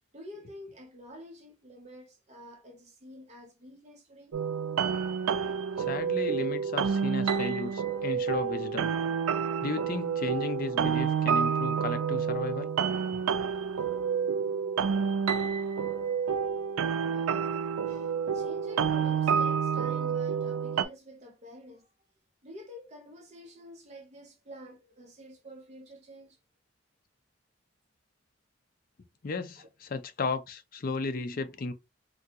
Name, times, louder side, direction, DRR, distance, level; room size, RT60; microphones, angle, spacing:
voice 1, 0.1-4.4 7.9-8.0 17.1-17.3 17.9-21.9 22.4-26.4 29.6-29.7, equal, 35° right, 0.6 m, -49 dB
sound 1, 4.3-20.8, right 6 dB, 90° right, 0.4 m, -29 dB
voice 2, 5.8-8.9 9.6-12.7 29.2-31.7, left 3 dB, 45° left, 0.4 m, -34 dB
3.7 x 2.2 x 2.8 m
head